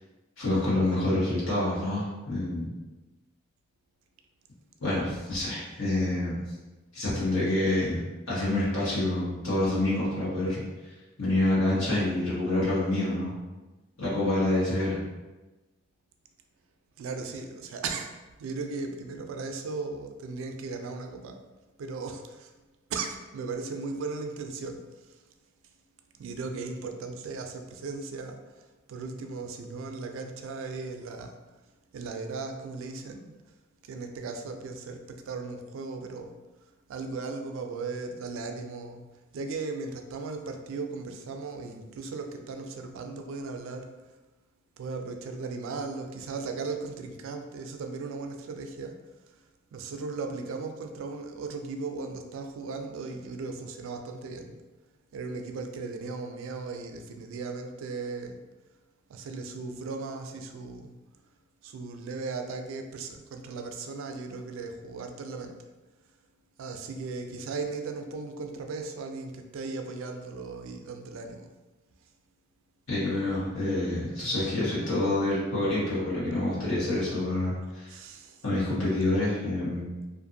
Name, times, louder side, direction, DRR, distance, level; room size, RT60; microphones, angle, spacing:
voice 1, 0.4-2.7 4.8-6.3 6.9-8.0 8.3-10.6 11.2-13.3 14.0-15.0 72.9-77.9 78.4-79.9, left 1 dB, 75° left, -8 dB, 1.2 m, -27 dB
voice 2, 17.0-18.1 18.4-21.4 21.8-22.5 22.9-24.8 26.2-28.4 28.9-31.4 31.9-33.3 33.8-36.3 36.9-39.1 39.3-43.9 44.8-49.0 49.7-54.6 55.1-58.4 59.1-61.0 61.6-65.6 66.6-71.5 77.9-78.4, right 4 dB, 70° right, 5 dB, 0.3 m, -37 dB
2.5 x 2.4 x 2.6 m, 1.2 s
head